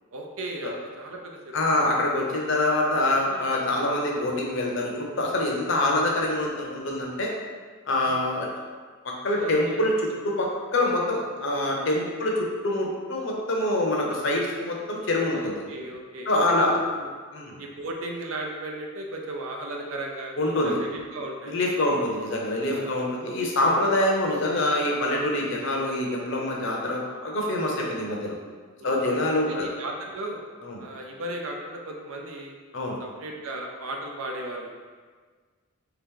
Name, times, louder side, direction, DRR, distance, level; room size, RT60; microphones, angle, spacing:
voice 1, 0.1-1.6 3.3-3.5 7.9-8.4 9.3-9.8 12.2-12.5 15.3-16.3 16.6-17.1 17.6-21.5 22.6-23.9 27.8-28.1 28.8-29.0 29.5-30.4 30.8-32.6 33.0-34.7, right 1 dB, 75° right, 1 dB, 0.6 m, -36 dB
voice 2, 1.5-7.3 7.9-8.5 9.0-9.9 10.2-15.5 16.3-16.7 17.3-17.6 20.4-20.8 21.4-28.4 28.8-29.7 30.6-30.8 32.7-33.0, left 1 dB, 60° left, -1 dB, 0.7 m, -25 dB
3.5 x 2.9 x 3.7 m, 1.5 s
head